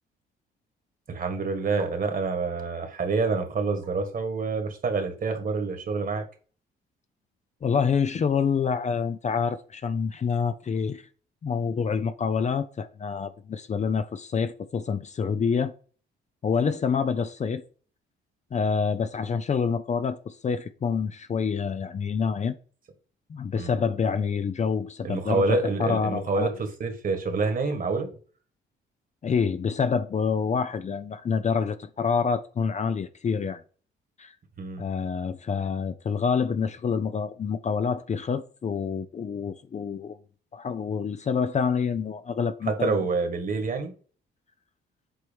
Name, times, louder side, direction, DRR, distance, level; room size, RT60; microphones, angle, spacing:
voice 1, 1.1-6.2 23.5-23.7 25.0-28.1 34.6-34.9 42.7-43.9, right 4 dB, 45° right, 1.8 m, -27 dB
voice 2, 7.6-11.0 11.4-15.7 16.4-17.6 18.5-22.6 23.3-26.5 29.2-33.6 34.2-34.3 34.8-40.2 40.5-43.0, left 6 dB, 35° left, 0.6 m, -27 dB
7.9 x 3.1 x 5.2 m
cardioid pair, 90°, 20 cm